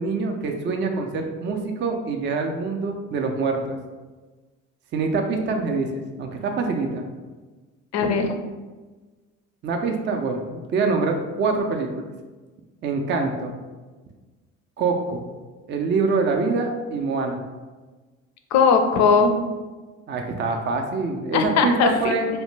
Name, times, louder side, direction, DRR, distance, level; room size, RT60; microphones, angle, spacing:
voice 1, 0.0-3.8 4.9-7.0 9.6-10.4 10.7-12.0 12.8-13.5 14.8-15.2 15.7-17.4 20.1-22.3, right 4 dB, 30° right, 3 dB, 0.4 m, -25 dB
voice 2, 7.9-8.3 18.5-19.3 21.3-22.1, left 5 dB, 50° left, 5 dB, 0.5 m, -19 dB
2.6 x 2.1 x 3.1 m, 1.3 s
hypercardioid pair, 60°, 36 cm